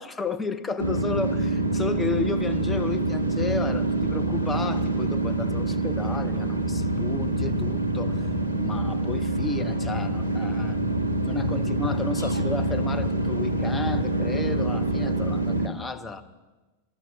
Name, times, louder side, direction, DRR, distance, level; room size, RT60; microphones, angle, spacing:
voice 1, 0.0-8.3 8.5-10.9 11.2-16.2, left 4 dB, 15° left, 7 dB, 0.8 m, -33 dB
sound 1, 0.8-15.7, right 2 dB, 90° left, 0.7 m, -26 dB
13.0 x 12.0 x 5.6 m, 1.2 s
figure-of-eight pair, 90°, 0 cm